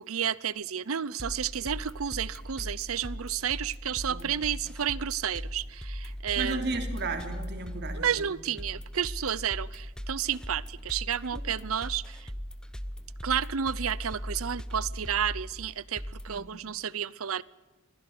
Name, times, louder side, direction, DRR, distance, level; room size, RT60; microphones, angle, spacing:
voice 1, 0.0-6.6 7.9-12.3 13.2-17.4, right 8 dB, 75° right, 21 dB, 0.7 m, -31 dB
sound 1, 1.2-16.4, equal, 5° left, 0.8 m, -39 dB
voice 2, 6.4-8.1 11.3-11.4 16.3-16.5, right 3 dB, 55° right, 6 dB, 3.2 m, -34 dB
22.5 x 15.5 x 9.5 m, 1.2 s
head